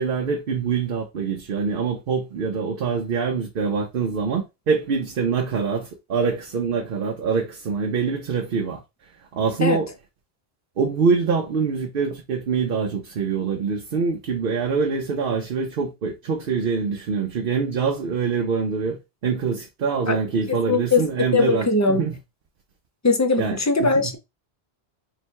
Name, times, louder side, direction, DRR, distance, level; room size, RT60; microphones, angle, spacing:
voice 1, 0.0-8.8 9.3-9.9 10.8-22.2 23.4-24.1, right 5 dB, 60° right, 0.8 m, -25 dB
voice 2, 20.7-21.0 21.3-22.0 23.0-24.2, left 3 dB, 20° left, 0.5 m, -20 dB
3.9 x 2.2 x 4.4 m
omnidirectional pair, 1.1 m